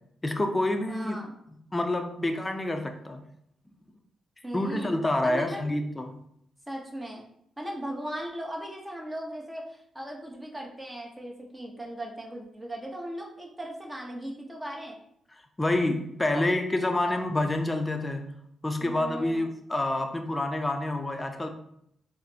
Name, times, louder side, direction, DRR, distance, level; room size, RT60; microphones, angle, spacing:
voice 1, 0.2-1.2 1.7-3.2 4.5-6.2 15.6-18.4 18.6-21.5, left 1 dB, 20° left, 5 dB, 0.5 m, -28 dB
voice 2, 0.9-1.4 4.4-4.9 5.2-5.7 6.7-7.2 7.6-15.0 16.3-16.4 17.1-17.2 18.8-19.5, right 1 dB, 15° right, -1 dB, 0.9 m, -38 dB
3.9 x 2.1 x 2.7 m, 0.72 s
supercardioid pair, 50°, 0 cm